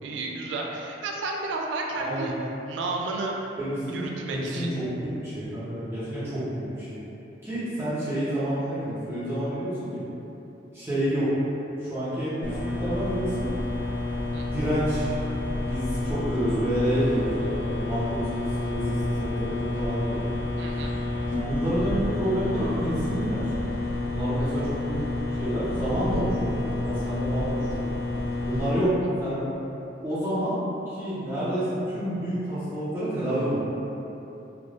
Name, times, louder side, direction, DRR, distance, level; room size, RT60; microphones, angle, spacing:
voice 1, 0.0-2.3 2.7-3.3 3.9-4.7 14.3-14.4 20.6-21.0 24.4-24.8, right 3 dB, 70° right, 0 dB, 0.3 m, -32 dB
voice 2, 2.0-2.3 3.6-4.0 4.3-6.9 7.4-10.0 10.7-11.5 11.8-13.5 14.5-15.1 15.6-20.2 21.4-23.5 24.1-25.0 25.4-27.9 28.4-28.9 29.2-29.4 30.0-30.6 30.9-33.6, equal, 15° right, -14 dB, 0.8 m, -29 dB
Hig Voltage Transformer, 12.4-28.7, left 2 dB, 50° left, 1.1 m, -29 dB
3.3 x 2.4 x 2.5 m, 3.0 s
head